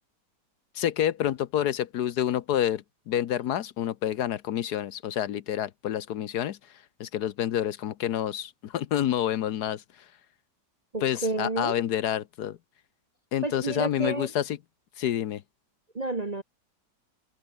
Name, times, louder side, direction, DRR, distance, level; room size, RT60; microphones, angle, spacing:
voice 1, 0.7-6.6 7.0-9.8 11.0-12.6 13.3-14.6 15.0-15.4, left 11 dB, 70° left, 1.3 m, -28 dB
voice 2, 10.9-11.7 13.4-14.3 15.9-16.4, right 2 dB, 25° right, 1.0 m, -30 dB
omnidirectional pair, 1.9 m